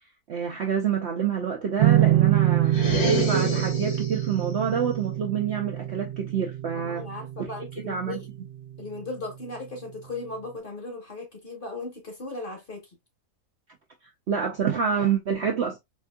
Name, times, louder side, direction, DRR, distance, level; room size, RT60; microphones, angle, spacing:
voice 1, 0.3-2.8 3.2-7.0 7.8-8.2 14.3-15.8, right 7 dB, 60° right, 0.7 m, -27 dB
sound 1, 1.8-9.0, right 13 dB, 75° right, 1.2 m, -25 dB
sound 2, 2.6-4.3, equal, 65° left, 1.9 m, -27 dB
voice 2, 6.7-8.3 8.8-12.9, left 3 dB, 40° left, 1.1 m, -37 dB
4.3 x 2.7 x 2.3 m
omnidirectional pair, 1.7 m